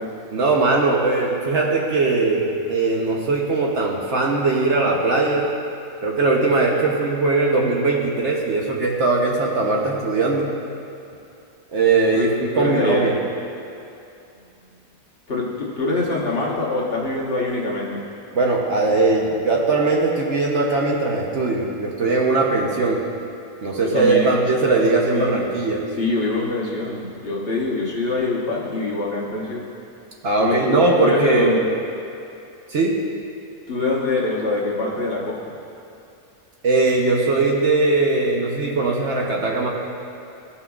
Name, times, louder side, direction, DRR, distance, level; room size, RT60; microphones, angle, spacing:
voice 1, 0.3-5.5 6.0-10.5 11.7-13.2 18.3-23.0 23.6-25.9 30.2-31.6 32.7-33.0 36.6-39.7, right 3 dB, 60° right, -1 dB, 1.0 m, -20 dB
voice 2, 12.6-13.1 15.3-18.0 23.8-24.4 25.1-25.4 26.0-29.7 30.4-31.7 33.7-35.4, left 2 dB, 45° left, -4 dB, 1.3 m, -24 dB
16.5 x 5.7 x 2.3 m, 2.6 s
omnidirectional pair, 1.5 m